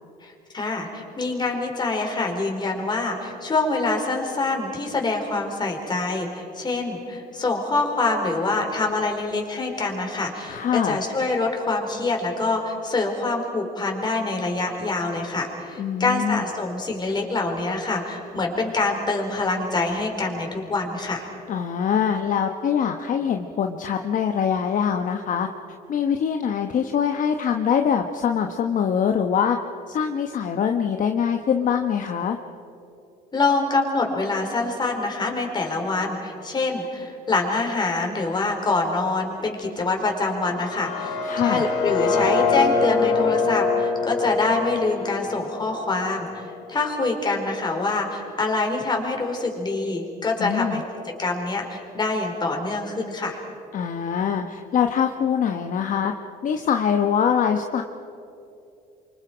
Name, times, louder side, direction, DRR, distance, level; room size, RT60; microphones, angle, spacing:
voice 1, 0.2-21.3 33.3-46.4 46.7-53.4, left 3 dB, 25° left, 1 dB, 4.5 m, -25 dB
voice 2, 10.5-11.0 15.8-16.4 21.5-25.5 25.9-29.6 29.9-32.4 41.2-41.7 50.4-50.8 53.7-56.1 56.4-57.8, left 7 dB, 50° left, 4 dB, 1.1 m, -23 dB
sound 1, 40.5-46.4, left 4 dB, 80° left, 5.1 m, -24 dB
28.5 x 25.0 x 5.1 m, 2.8 s
cardioid pair, 110°, 17 cm